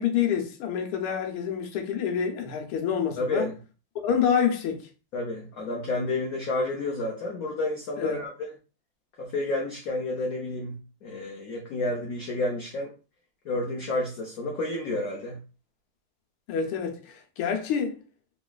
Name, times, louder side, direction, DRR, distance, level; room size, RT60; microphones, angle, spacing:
voice 1, 0.0-3.5 4.0-4.9 8.0-8.2 16.5-18.0, left 7 dB, 85° left, 1.6 m, -27 dB
voice 2, 3.2-3.5 5.1-8.3 9.2-12.9 13.4-15.4, left 2 dB, 70° left, 0.8 m, -30 dB
3.9 x 3.0 x 2.3 m
omnidirectional pair, 2.3 m